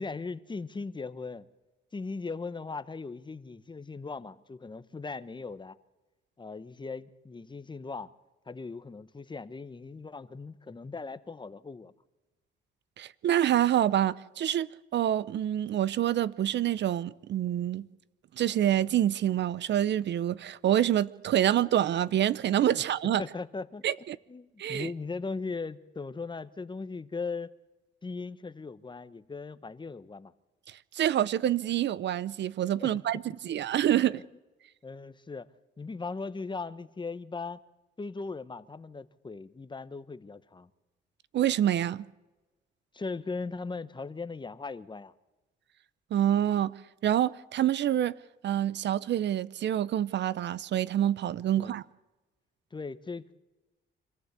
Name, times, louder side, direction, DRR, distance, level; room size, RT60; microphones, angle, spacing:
voice 1, 0.0-1.5 1.9-5.8 6.4-8.1 8.5-11.9 22.7-22.8 23.2-23.9 24.3-27.5 28.0-30.3 32.8-32.9 33.5-33.6 34.1-34.2 34.8-35.5 35.8-37.6 38.0-40.7 42.9-45.1 51.6-51.8 52.7-53.4, left 4 dB, 25° left, 1.1 m, -38 dB
voice 2, 13.0-14.7 14.9-17.9 18.4-23.2 23.8-24.2 24.6-24.9 30.7-34.2 41.3-42.0 46.1-46.7 47.0-48.1 48.4-51.8, right 11 dB, 65° right, 0.7 m, -27 dB
26.0 x 15.0 x 8.2 m
cardioid pair, 90°, 20 cm